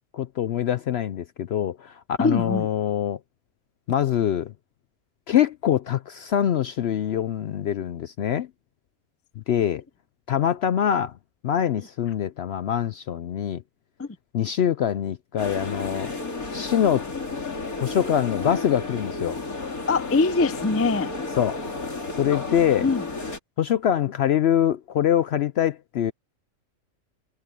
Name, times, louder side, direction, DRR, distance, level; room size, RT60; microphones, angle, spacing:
voice 1, 0.1-3.2 3.9-4.5 5.3-8.5 9.5-9.8 10.3-11.2 11.4-13.6 14.3-16.1 16.5-17.1 17.8-19.4 21.4-21.6 22.1-22.9 23.6-26.1, left 10 dB, 65° left, 0.7 m, -24 dB
voice 2, 2.2-2.7 14.0-14.1 19.9-21.1 22.8-23.0, left 3 dB, 20° left, 0.4 m, -22 dB
sound 1, 15.4-23.4, left 3 dB, 85° left, 3.6 m, -32 dB
omnidirectional pair, 1.5 m